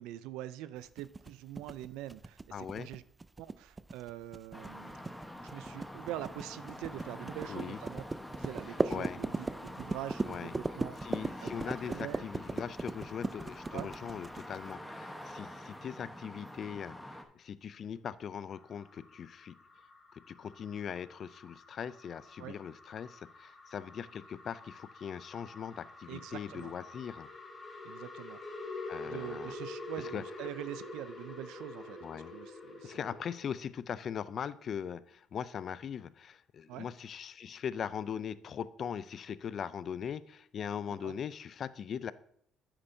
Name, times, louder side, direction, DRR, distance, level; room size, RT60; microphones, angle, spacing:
voice 1, 0.0-3.0 3.4-5.0 5.5-8.0 8.4-11.0 11.4-11.5 11.9-12.2 13.7-13.9 22.4-22.6 26.1-26.7 27.8-28.4 29.0-33.0 36.7-36.9 41.0-41.1, right 13 dB, 90° right, 15 dB, 0.4 m, -44 dB
sound 1, 1.0-14.7, right 3 dB, 20° right, 0.3 m, -37 dB
voice 2, 2.5-2.9 7.5-7.8 8.9-9.2 10.2-10.5 11.0-19.6 20.1-27.3 28.9-29.5 30.0-30.2 32.0-32.3 32.8-42.1, left 8 dB, 50° left, 16 dB, 0.4 m, -40 dB
sound 2, 4.5-17.2, left 1 dB, 5° left, 1.0 m, -46 dB
sound 3, 18.5-33.6, left 2 dB, 30° left, 2.9 m, -47 dB
9.7 x 8.7 x 2.7 m, 0.65 s
cardioid pair, 105°, 0 cm